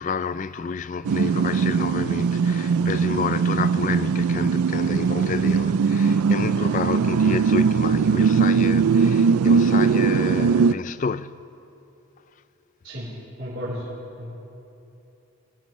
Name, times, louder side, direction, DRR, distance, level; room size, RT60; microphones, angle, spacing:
voice 1, 0.0-11.4, left 5 dB, 35° left, 0.3 m, -30 dB
sound 1, 1.0-10.7, right 5 dB, 90° right, 0.4 m, -20 dB
voice 2, 13.4-13.9 14.2-14.3, equal, 55° right, 4.3 m, -32 dB
25.5 x 17.5 x 3.1 m
head